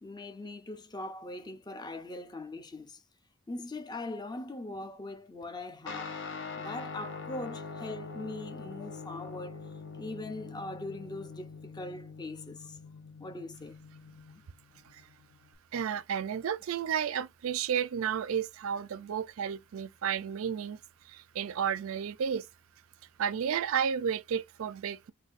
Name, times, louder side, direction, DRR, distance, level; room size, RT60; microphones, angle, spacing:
voice 1, 0.0-3.0 3.5-6.2 6.6-9.6 10.0-12.8 13.2-13.8, left 2 dB, 20° left, 0.5 m, -41 dB
Guitar, 5.9-15.5, left 4 dB, 60° left, 0.8 m, -44 dB
voice 2, 15.7-20.8 21.1-22.5 23.2-25.1, right 8 dB, 80° right, 0.4 m, -32 dB
4.0 x 2.6 x 2.5 m
head